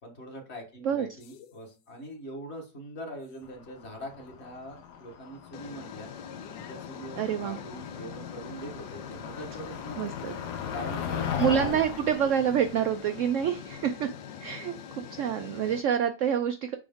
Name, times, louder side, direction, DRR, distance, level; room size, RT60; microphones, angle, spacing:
voice 1, 0.0-6.1 6.5-10.3 10.6-11.6, equal, 40° left, 2 dB, 1.7 m, -43 dB
sound 1, 1.2-1.6 3.3-3.4 5.5-15.8, left 7 dB, 90° left, 1.3 m, -44 dB
Motor vehicle (road), 3.5-13.9, left 8 dB, 70° left, 1.4 m, -38 dB
voice 2, 7.2-7.6 10.0-10.3 11.4-14.1 14.4-16.8, right 8 dB, 80° right, 8 dB, 0.6 m, -27 dB
7.0 x 5.0 x 3.6 m, 0.33 s
omnidirectional pair, 1.8 m